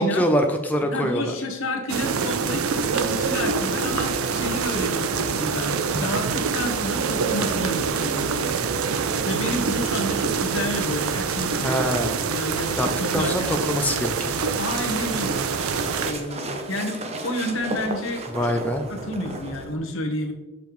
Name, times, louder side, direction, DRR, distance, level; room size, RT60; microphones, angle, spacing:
voice 1, 0.0-1.4 11.6-12.2 12.8-12.9 13.1-14.3 18.3-18.8, equal, 10° left, 4 dB, 0.4 m, -24 dB
voice 2, 0.9-8.7 9.2-11.9 12.3-13.8 14.5-15.4 16.0-18.3 18.9-20.3, left 1 dB, 65° left, 3 dB, 1.0 m, -30 dB
sound 1, 1.9-16.1, right 5 dB, 85° right, 0.5 m, -25 dB
sound 2, 14.4-19.7, right 2 dB, 30° right, 0.6 m, -34 dB
6.7 x 5.2 x 3.1 m, 1.1 s
head